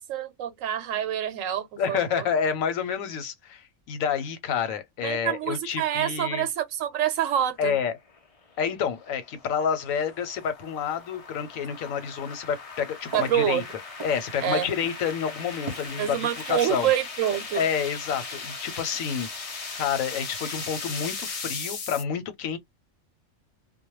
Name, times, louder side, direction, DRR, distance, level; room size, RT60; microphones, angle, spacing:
voice 1, 0.0-2.3 5.0-7.7 13.1-13.6 14.4-14.7 16.0-17.6, right 10 dB, 80° right, 1.0 m, -27 dB
voice 2, 1.8-6.4 7.6-8.0 8.6-13.6 14.0-16.9 17.5-22.6, left 7 dB, 85° left, 1.1 m, -29 dB
sound 1, 8.1-22.0, left 4 dB, 45° left, 0.5 m, -38 dB
Walk footsteps, 13.0-20.2, right 4 dB, 35° right, 0.4 m, -44 dB
2.3 x 2.2 x 3.0 m
omnidirectional pair, 1.4 m